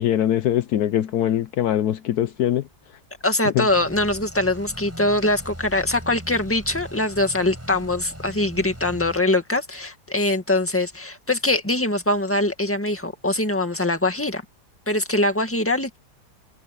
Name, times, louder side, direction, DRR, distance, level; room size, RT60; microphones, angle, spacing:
voice 1, 0.0-2.7 3.4-3.7, left 11 dB, 75° left, 1.2 m, -22 dB
voice 2, 3.2-14.4 14.9-16.0, left 2 dB, 10° left, 1.9 m, -23 dB
sound 1, 3.7-9.2, equal, 10° right, 7.1 m, -39 dB
omnidirectional pair, 1.8 m